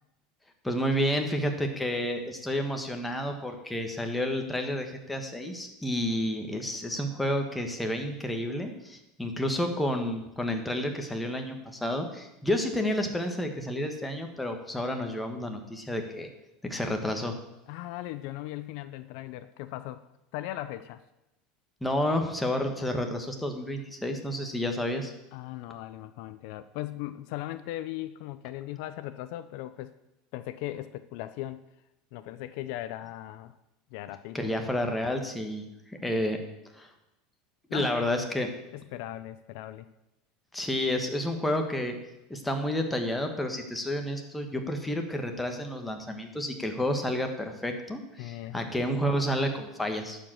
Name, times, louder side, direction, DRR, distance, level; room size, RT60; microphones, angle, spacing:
voice 1, 0.6-16.3 16.6-17.3 21.8-25.1 34.3-35.6 36.0-36.4 36.8-36.9 37.7-38.5 40.5-41.9 42.3-50.2, left 1 dB, 5° left, 4 dB, 1.6 m, -30 dB
voice 2, 17.7-20.1 20.3-21.0 25.3-29.9 30.3-31.6 32.1-33.5 33.9-34.5 37.7-38.1 38.7-39.9 48.2-48.7, left 14 dB, 70° left, 13 dB, 0.5 m, -38 dB
11.5 x 5.1 x 7.7 m, 0.92 s
supercardioid pair, 110°, 0 cm